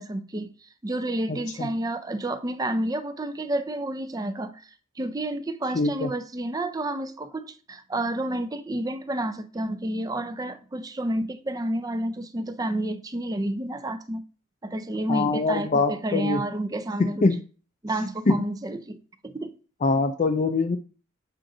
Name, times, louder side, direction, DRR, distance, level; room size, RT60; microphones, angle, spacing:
voice 1, 0.0-4.6 5.0-14.2 14.6-17.3 17.8-19.5, right 1 dB, 20° right, 0.5 m, -30 dB
voice 2, 1.3-1.7 5.7-6.1 15.1-16.4 17.2-17.4 18.3-18.4 19.8-20.8, left 3 dB, 35° left, 0.5 m, -23 dB
7.6 x 4.8 x 3.9 m
head